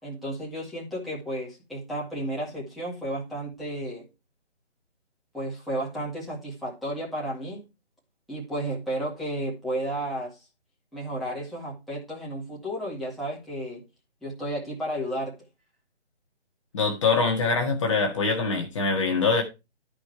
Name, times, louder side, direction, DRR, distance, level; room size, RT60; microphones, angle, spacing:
voice 1, 0.0-4.1 5.3-7.6 8.3-10.4 10.9-13.8 14.2-15.3, right 1 dB, ahead, 2.0 m, -32 dB
voice 2, 16.7-19.4, left 4 dB, 30° left, 1.8 m, -24 dB
13.0 x 5.1 x 4.6 m
figure-of-eight pair, 155°, 33 cm